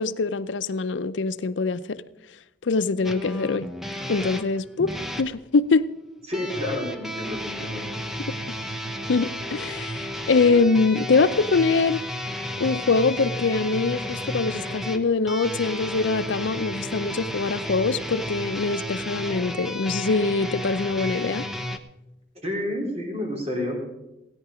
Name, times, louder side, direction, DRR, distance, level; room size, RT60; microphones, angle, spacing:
voice 1, 0.0-2.0 2.6-3.7 4.1-4.9 5.2-5.8 9.1-12.0 12.6-21.4, left 4 dB, 80° left, 0.5 m, -23 dB
sound 1, 3.0-5.3 6.3-21.8, equal, ahead, 0.8 m, -32 dB
voice 2, 6.3-7.8 22.4-23.8, left 1 dB, 35° right, 3.5 m, -29 dB
16.5 x 10.0 x 5.0 m
head